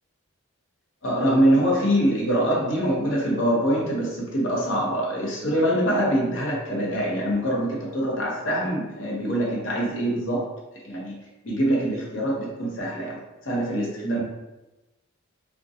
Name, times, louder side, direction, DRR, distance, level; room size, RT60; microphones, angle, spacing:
voice 1, 1.0-10.6 10.8-11.2 11.4-13.2 13.4-14.2, right 1 dB, 65° left, -3 dB, 0.7 m, -24 dB
2.5 x 2.1 x 2.6 m, 1.0 s
head